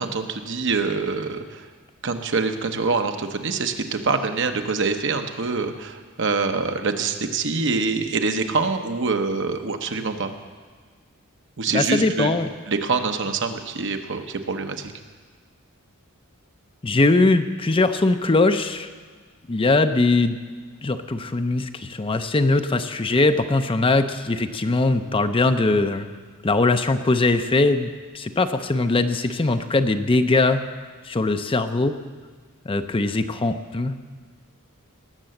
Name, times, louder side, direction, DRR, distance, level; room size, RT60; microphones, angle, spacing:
voice 1, 0.0-1.6 2.0-10.3 11.6-12.3 12.7-14.9, right 4 dB, 60° right, 6 dB, 1.0 m, -25 dB
voice 2, 11.7-12.5 16.8-18.9 19.5-20.4 20.8-26.1 26.4-30.6 31.0-31.9 32.7-34.0, left 2 dB, 25° left, 9 dB, 0.5 m, -21 dB
18.5 x 6.9 x 7.7 m, 1.5 s
head